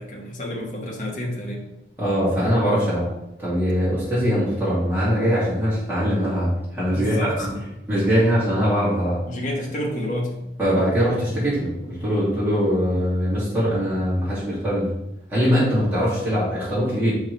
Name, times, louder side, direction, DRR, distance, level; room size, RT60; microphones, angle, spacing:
voice 1, 0.0-1.6 6.9-7.6 9.3-10.4, left 1 dB, 45° left, -2 dB, 1.3 m, -29 dB
voice 2, 2.0-3.1 3.4-7.5 7.9-9.2 10.6-14.9 15.3-17.2, equal, 10° right, -10 dB, 2.2 m, -22 dB
5.8 x 3.2 x 5.4 m, 0.87 s
head